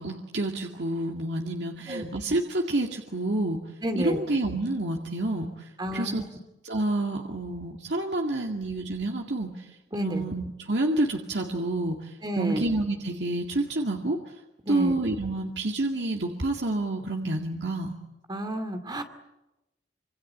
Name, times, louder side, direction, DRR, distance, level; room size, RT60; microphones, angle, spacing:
voice 1, 0.0-3.6 4.0-6.2 6.6-14.3 14.7-18.0, right 2 dB, 70° right, 2 dB, 2.1 m, -29 dB
voice 2, 3.8-4.2 5.8-6.2 9.9-10.2 12.2-12.6 14.6-14.9 18.3-19.0, equal, 25° right, 8 dB, 2.4 m, -30 dB
26.0 x 25.0 x 8.7 m, 0.97 s
head